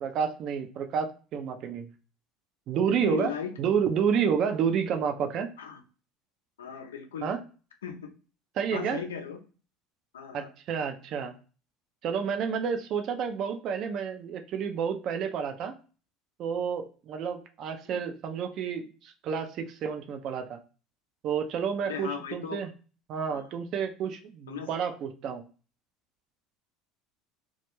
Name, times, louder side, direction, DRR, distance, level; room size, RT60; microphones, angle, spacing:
voice 1, 0.0-1.9 2.7-5.5 7.2-7.4 8.6-9.0 10.3-11.3 12.0-15.7 16.4-20.6 21.2-22.7 23.1-25.4, right 7 dB, 55° right, 6 dB, 0.4 m, -30 dB
voice 2, 2.9-3.6 5.6-5.8 6.6-7.3 7.8-8.1 8.7-9.4 10.1-10.5 17.9-18.0 21.8-22.7 23.3-23.4 24.5-24.7, left 7 dB, 85° left, 4 dB, 0.4 m, -37 dB
2.2 x 2.1 x 2.9 m, 0.36 s
hypercardioid pair, 75°, 0 cm